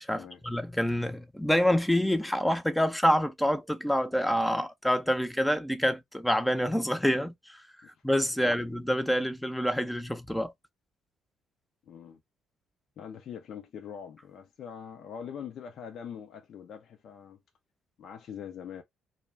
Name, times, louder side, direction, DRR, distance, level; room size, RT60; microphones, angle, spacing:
voice 1, 0.1-7.3 8.0-10.5, equal, 5° left, 0.5 m, -27 dB
voice 2, 11.9-12.2 13.0-17.4 18.0-18.8, left 8 dB, 65° left, 0.5 m, -43 dB
2.2 x 2.1 x 3.2 m
supercardioid pair, 65°, 0 cm